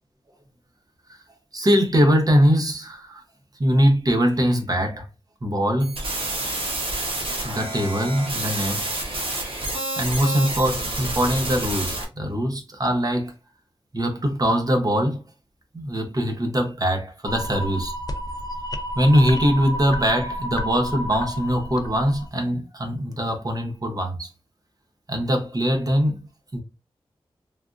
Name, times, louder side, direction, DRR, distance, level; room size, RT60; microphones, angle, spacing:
voice 1, 1.5-3.2 3.6-5.1 5.4-5.9 7.4-8.9 10.0-13.3 13.9-15.2 15.7-17.9 19.0-24.3 25.1-26.6, equal, 40° right, 0.8 m, -22 dB
sound 1, 5.8-12.0, right 2 dB, 70° right, 1.0 m, -28 dB
sound 2, 17.2-22.3, equal, 45° left, 0.5 m, -31 dB
3.3 x 2.4 x 2.4 m
wide cardioid pair, 95°, 10 cm